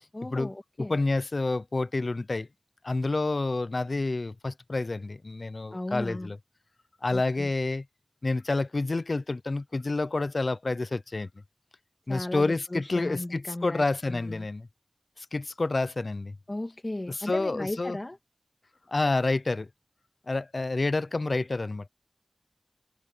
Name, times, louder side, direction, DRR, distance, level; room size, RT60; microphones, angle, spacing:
voice 1, 0.1-0.9 5.7-6.3 7.1-7.5 12.1-14.5 16.5-18.2, left 1 dB, 35° left, 2.6 m, -36 dB
voice 2, 0.9-2.5 2.8-6.4 7.0-7.8 8.2-11.3 12.1-14.7 15.3-16.3 17.1-18.0 18.9-19.7 20.3-21.9, left 2 dB, 65° left, 0.7 m, -28 dB
wide cardioid pair, 55°, 0 cm